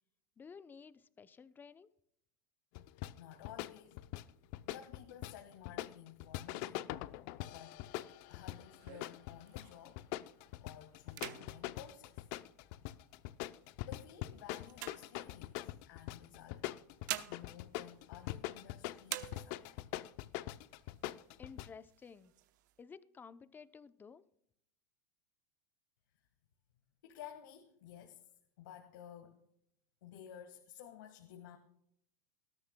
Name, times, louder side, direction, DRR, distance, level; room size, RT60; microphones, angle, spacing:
voice 1, 0.4-1.9 21.4-22.3 22.8-24.2, left 5 dB, 20° left, 14 dB, 0.6 m, -54 dB
sound 1, 2.7-21.7, left 16 dB, 60° left, 0.6 m, -43 dB
voice 2, 3.1-4.0 4.7-7.0 7.4-7.8 8.3-10.1 10.6-12.3 13.8-16.7 17.3-19.9 26.1-26.2 27.0-28.3 28.6-29.4 30.0-31.6, left 9 dB, 80° left, 4 dB, 1.7 m, -54 dB
sound 2, 7.8-10.0 10.5-10.7 11.0-13.0 13.6-15.8 16.7-18.7 19.0-19.9 20.3-20.4 20.7-21.4 21.8-22.7, right 14 dB, 75° right, 0.9 m, -47 dB
19.5 x 13.0 x 2.3 m, 0.72 s
supercardioid pair, 120°, 10 cm